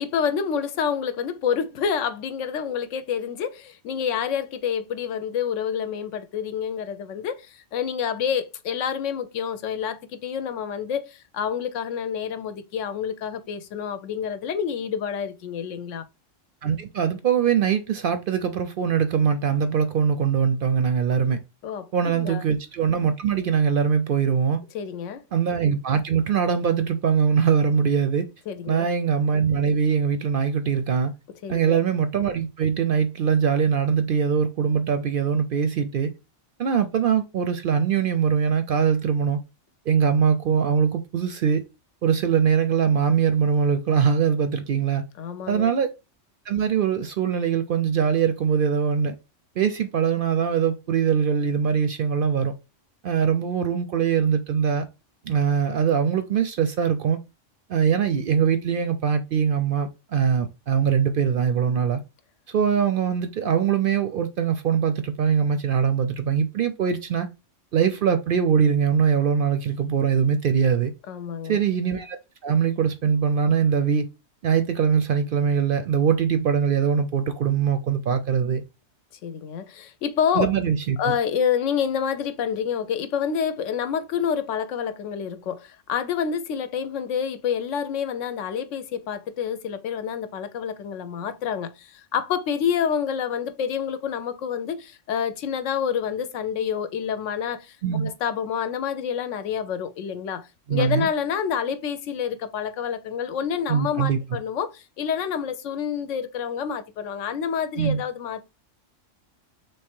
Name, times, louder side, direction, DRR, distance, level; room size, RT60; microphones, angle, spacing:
voice 1, 0.0-16.1 21.6-22.4 24.7-25.2 28.5-28.9 31.4-31.8 45.2-45.7 71.1-71.6 79.2-80.5 81.0-108.5, left 7 dB, 85° left, 1.0 m, -28 dB
voice 2, 16.6-21.4 21.9-24.6 25.3-28.3 28.7-31.1 31.5-36.1 36.6-39.4 39.9-41.6 42.0-45.0 45.5-45.9 46.5-49.1 49.6-52.5 53.0-54.8 55.2-57.2 57.7-62.0 62.5-67.3 67.7-70.9 71.4-72.2 72.4-74.0 74.4-78.6 80.4-81.0 97.8-98.1 100.7-101.1 103.7-104.2 107.8-108.0, right 7 dB, 60° right, 0.6 m, -22 dB
3.4 x 3.3 x 4.3 m
omnidirectional pair, 1.3 m